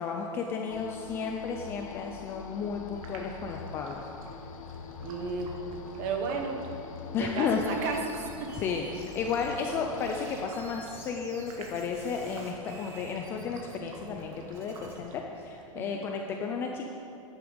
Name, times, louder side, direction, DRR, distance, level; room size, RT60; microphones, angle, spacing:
voice 1, 0.0-4.1 7.1-7.6 8.5-16.9, left 5 dB, 15° left, 2 dB, 0.3 m, -33 dB
sound 1, 0.7-10.5, left 7 dB, 80° left, 0.9 m, -44 dB
sound 2, 3.0-15.7, right 2 dB, 85° right, 1.9 m, -49 dB
voice 2, 5.0-5.5 6.0-6.6 7.2-8.5 15.7-16.0, right 4 dB, 35° right, 3 dB, 1.3 m, -33 dB
sound 3, 7.5-9.7 10.0-15.0, right 4 dB, 15° right, 1.0 m, -52 dB
10.5 x 10.0 x 5.2 m, 2.8 s
supercardioid pair, 175°, 17 cm